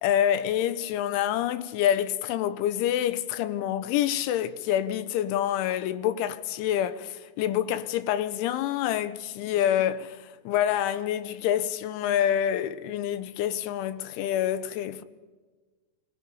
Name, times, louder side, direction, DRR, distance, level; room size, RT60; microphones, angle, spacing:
voice 1, 0.0-15.0, left 11 dB, 80° left, 3.2 m, -27 dB
27.0 x 21.5 x 5.5 m
omnidirectional pair, 5.5 m